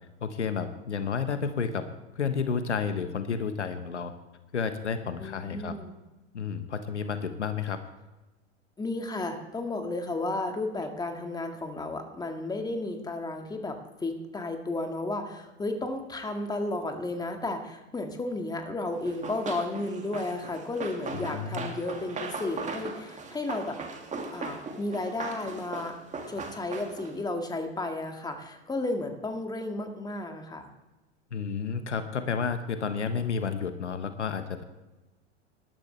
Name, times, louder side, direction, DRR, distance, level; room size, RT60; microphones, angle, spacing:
voice 1, 0.2-1.8 2.1-4.1 4.5-5.7 6.3-7.8 21.1-21.7 31.3-34.6, left 6 dB, 85° left, 10 dB, 1.2 m, -31 dB
voice 2, 5.2-5.9 8.8-23.8 24.3-26.0 26.3-30.7, left 2 dB, 10° left, 4 dB, 1.8 m, -33 dB
Run, 19.0-27.2, right 4 dB, 20° right, 2.2 m, -39 dB
19.0 x 12.0 x 3.3 m, 1.1 s
hypercardioid pair, 95°, 34 cm